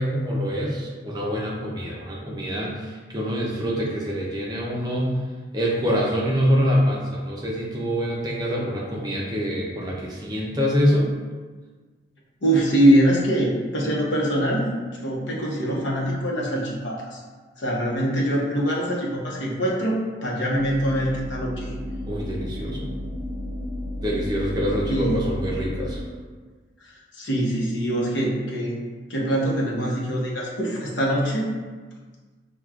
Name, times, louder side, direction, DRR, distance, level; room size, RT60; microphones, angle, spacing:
voice 1, 0.0-5.2 5.5-11.1 22.1-22.9 24.0-26.0, equal, 20° right, -3 dB, 0.5 m, -25 dB
voice 2, 12.4-14.7 15.0-17.2 17.6-21.7 24.9-25.2 26.8-28.8 29.1-31.5, right 1 dB, 70° left, -3 dB, 0.8 m, -23 dB
sound 1, 20.5-26.0, left 1 dB, 75° right, 0.5 m, -32 dB
5.9 x 2.3 x 2.4 m, 1.4 s
head